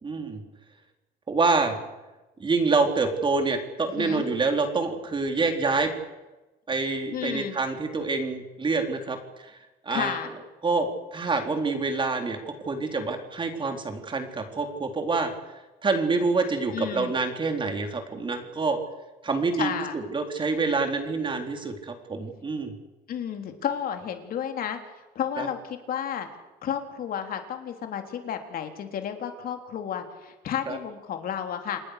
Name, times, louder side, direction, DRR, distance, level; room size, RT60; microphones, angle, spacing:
voice 1, 0.0-0.4 1.3-1.7 2.4-5.9 6.7-9.2 9.4-9.5 9.8-10.2 10.6-15.3 15.8-18.8 19.2-22.7 25.4-25.5 30.7-30.8, right 3 dB, 30° right, 5 dB, 4.1 m, -26 dB
voice 2, 7.1-7.6 9.9-10.3 16.7-17.1 19.6-20.0 23.1-24.8 25.2-26.3 26.6-31.8, left 9 dB, 60° left, 6 dB, 3.6 m, -32 dB
28.0 x 20.5 x 6.8 m, 1.1 s
cardioid pair, 110°, 17 cm